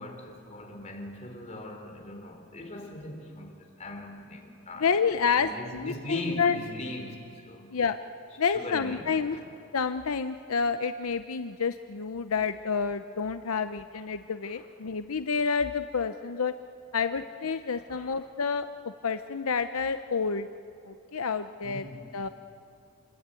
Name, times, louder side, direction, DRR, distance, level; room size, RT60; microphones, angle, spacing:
voice 1, 0.0-4.9 5.4-7.7 8.5-9.4 13.9-14.0 14.4-14.6 17.9-18.2 21.6-22.1, left 1 dB, 30° left, 2 dB, 4.0 m, -40 dB
voice 2, 4.8-6.6 7.7-8.0 8.4-9.4 9.7-16.5 16.9-18.7 19.0-20.5 20.9-21.9 22.1-22.3, left 5 dB, 80° left, 10 dB, 0.7 m, -29 dB
27.0 x 22.0 x 9.1 m, 2.7 s
head